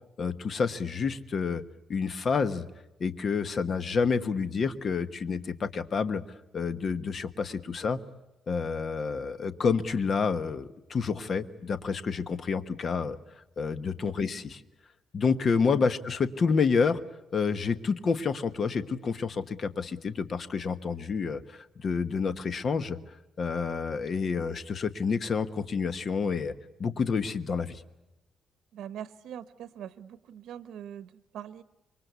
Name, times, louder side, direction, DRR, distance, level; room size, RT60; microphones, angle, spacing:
voice 1, 0.2-1.6 1.9-2.6 3.0-6.2 6.5-8.0 8.5-13.2 13.6-14.6 15.1-17.0 17.3-23.0 23.4-26.5 26.8-27.8, left 5 dB, 40° left, 12 dB, 1.2 m, -29 dB
voice 2, 28.7-31.6, right 10 dB, 90° right, 14 dB, 1.0 m, -42 dB
26.5 x 23.5 x 8.2 m, 0.95 s
cardioid pair, 160°, 0 cm